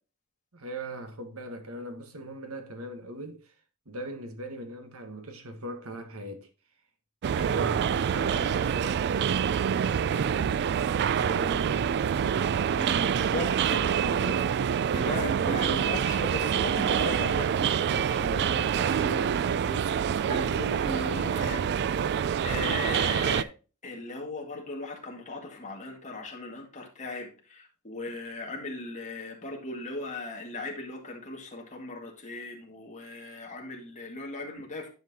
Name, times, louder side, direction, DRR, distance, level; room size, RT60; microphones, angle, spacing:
voice 1, 0.5-3.5 3.8-6.5 7.3-10.6 10.9-12.0 13.6-14.6 15.3-15.9, right 1 dB, 70° right, 1.5 m, -39 dB
sound 1, 7.2-23.4, right 8 dB, 50° right, 0.3 m, -26 dB
voice 2, 12.7-13.9 14.9-21.7 22.4-23.5 23.8-35.0, left 2 dB, 35° left, 2.0 m, -38 dB
10.5 x 5.8 x 2.8 m
head